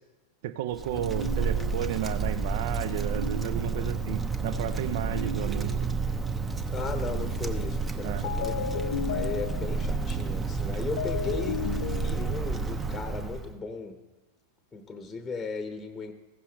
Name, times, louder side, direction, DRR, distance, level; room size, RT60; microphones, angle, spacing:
voice 1, 0.4-5.7 8.0-8.2 10.7-10.8, right 11 dB, 50° right, 12 dB, 0.5 m, -33 dB
Wind, 0.7-13.5, right 4 dB, 15° right, 0.8 m, -31 dB
sound 1, 0.9-2.1 2.9-4.0 4.9-6.0 6.9-7.4 8.2-8.7, right 3 dB, 80° right, 1.7 m, -39 dB
voice 2, 6.7-14.0 14.7-16.1, left 4 dB, 10° left, 6 dB, 1.0 m, -37 dB
sound 2, 8.2-9.9 11.0-12.7, left 9 dB, 60° left, 0.6 m, -33 dB
16.0 x 6.9 x 3.2 m, 1.1 s
figure-of-eight pair, 90°, 0 cm